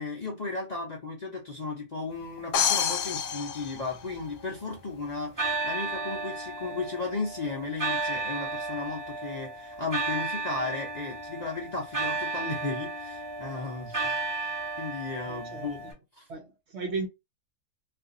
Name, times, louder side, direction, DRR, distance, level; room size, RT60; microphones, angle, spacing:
voice 1, 0.0-15.8 16.1-16.2, left 3 dB, 45° left, 0.6 m, -35 dB
sound 1, 2.5-4.5, left 8 dB, 85° left, 1.0 m, -28 dB
sound 2, 3.3-4.8 5.4-15.9, right 3 dB, 15° right, 1.1 m, -34 dB
voice 2, 15.3-15.9 16.3-17.1, right 4 dB, 60° right, 0.7 m, -36 dB
2.6 x 2.4 x 3.7 m
omnidirectional pair, 1.5 m